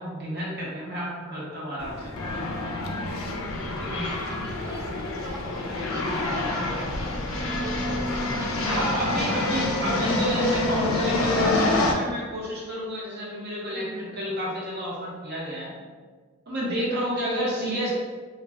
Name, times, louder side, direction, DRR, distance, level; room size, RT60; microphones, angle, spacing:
voice 1, 0.0-2.4 3.8-4.1 8.7-15.7 16.5-17.9, equal, 50° right, -5 dB, 0.8 m, -30 dB
sound 1, 1.8-11.9, left 2 dB, 65° left, 0.4 m, -27 dB
voice 2, 4.0-8.0 8.3-9.9 13.7-14.2 17.2-17.9, right 1 dB, 15° right, -2 dB, 0.4 m, -42 dB
2.3 x 2.2 x 3.3 m, 1.5 s
head